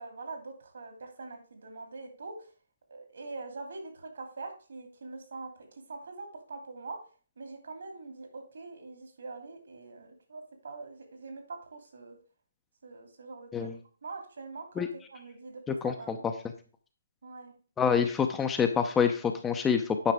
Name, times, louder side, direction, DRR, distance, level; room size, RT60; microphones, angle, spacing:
voice 1, 0.0-2.4 2.9-5.5 5.9-7.0 7.4-12.2 12.8-13.7 14.0-14.8 15.1-16.2 17.2-17.5, right 3 dB, 65° right, 3 dB, 2.6 m, -43 dB
voice 2, 15.8-16.3 17.8-20.1, left 6 dB, 10° left, 6 dB, 0.7 m, -27 dB
9.3 x 5.8 x 3.5 m, 0.39 s
figure-of-eight pair, 140°, 0 cm